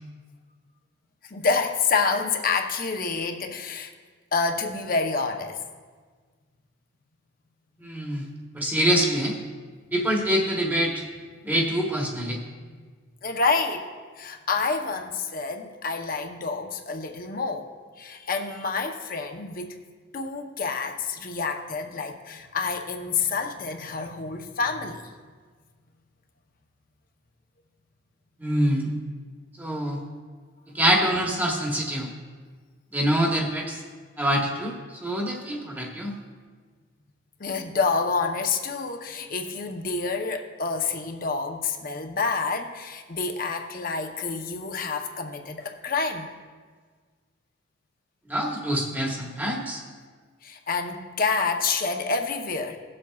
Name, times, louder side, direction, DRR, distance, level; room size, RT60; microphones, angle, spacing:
voice 1, 1.2-3.9 4.3-5.6 12.6-12.9 13.2-13.9 14.2-17.7 18.0-19.7 20.1-25.1 37.4-46.3 50.4-52.8, left 4 dB, 45° left, 4 dB, 0.8 m, -28 dB
voice 2, 7.8-8.3 8.5-9.4 9.9-11.0 11.4-12.4 28.4-28.9 29.6-30.0 30.7-32.1 32.9-33.8 34.2-36.1 48.3-49.8, equal, 10° right, -1 dB, 1.2 m, -25 dB
18.0 x 7.6 x 2.4 m, 1.5 s
head